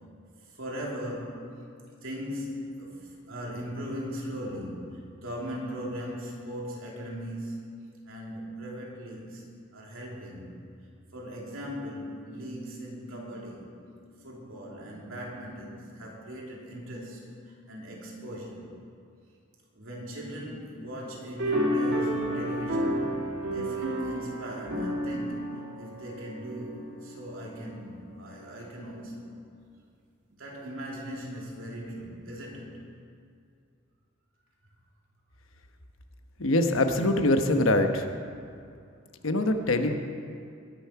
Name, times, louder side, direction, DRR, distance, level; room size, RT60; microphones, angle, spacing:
voice 1, 0.6-1.4 2.0-7.7 8.1-9.4 9.7-10.6 11.1-13.7 14.2-17.2 17.7-18.7 19.7-23.1 23.5-25.5 25.8-29.2 30.3-32.8 39.1-39.3, equal, 80° right, -3 dB, 2.9 m, -39 dB
sound 1, 21.4-26.9, equal, 55° right, 2.1 m, -30 dB
voice 2, 36.4-38.1 39.2-39.9, left 1 dB, 75° left, 6 dB, 1.1 m, -23 dB
20.5 x 7.2 x 5.8 m, 2.4 s
head